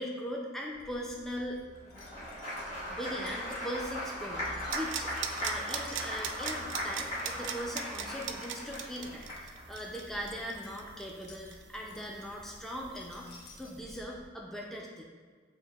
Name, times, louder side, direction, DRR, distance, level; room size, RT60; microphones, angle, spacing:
voice 1, 0.0-1.6 2.8-5.1 5.4-13.3 13.6-15.1, equal, ahead, -2 dB, 0.3 m, -40 dB
Wind chime, 0.7-14.4, left 1 dB, 55° left, 0.6 m, -52 dB
Applause, 1.8-9.6, equal, 40° left, 1.5 m, -38 dB
sound 1, 4.7-12.2 12.5-12.6, right 9 dB, 75° right, 0.3 m, -38 dB
7.3 x 2.6 x 2.3 m, 1.5 s
head